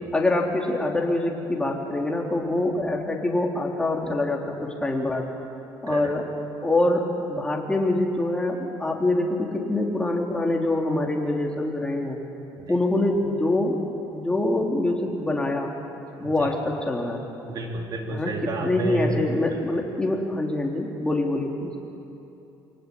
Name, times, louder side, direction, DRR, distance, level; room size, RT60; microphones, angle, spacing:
voice 1, 0.0-5.3 5.8-6.3 6.6-12.2 12.7-13.8 14.1-15.7 16.2-17.2 18.1-18.3 18.6-21.7, left 2 dB, 10° left, 0 dB, 3.7 m, -25 dB
voice 2, 17.5-19.2 19.4-19.8, right 2 dB, 50° right, 1 dB, 3.9 m, -31 dB
28.5 x 23.0 x 8.8 m, 2.9 s
cardioid pair, 125°, 9 cm